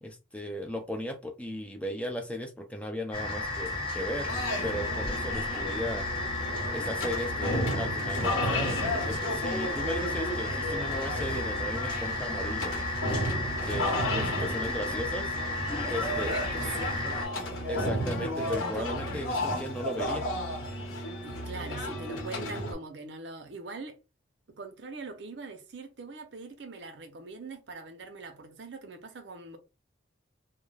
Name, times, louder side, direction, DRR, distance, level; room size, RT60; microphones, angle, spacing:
voice 1, 0.0-4.3 4.6-6.1 6.7-12.8 13.6-15.3 15.9-16.4 17.7-20.3, equal, 5° left, 0.3 m, -36 dB
sound 1, 3.1-17.3, left 2 dB, 25° left, 0.7 m, -33 dB
sound 2, 4.3-22.7, left 1 dB, 90° left, 1.0 m, -33 dB
voice 2, 14.2-14.5 15.8-17.2 18.7-19.2 21.2-24.0 24.5-29.6, right 3 dB, 60° right, 0.6 m, -42 dB
2.2 x 2.1 x 3.2 m
head